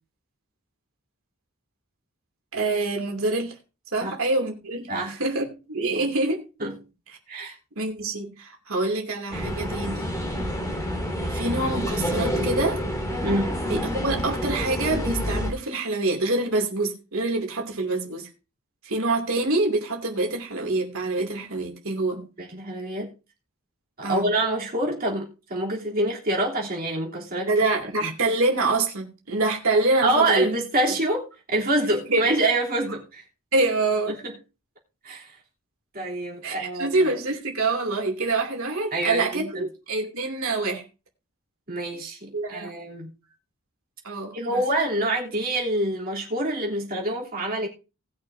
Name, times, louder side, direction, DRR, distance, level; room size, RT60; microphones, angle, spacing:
voice 1, 2.5-3.5 3.9-6.4 7.3-10.1 11.2-12.8 13.7-18.3 18.8-22.3 24.0-24.3 27.5-30.5 30.9-31.0 32.1-32.2 33.5-34.2 36.4-40.8 42.3-42.7 44.0-44.6, right 2 dB, 65° right, 2.7 m, -26 dB
sound 1, 9.3-15.5, equal, 15° left, 2.7 m, -28 dB
voice 2, 13.2-13.6 22.4-23.1 24.0-27.5 28.0-28.1 30.0-33.2 34.1-34.3 35.0-35.3 35.9-36.9 38.9-39.6 41.7-43.1 44.3-47.7, right 1 dB, 40° right, 3.3 m, -26 dB
19.5 x 6.5 x 2.7 m
head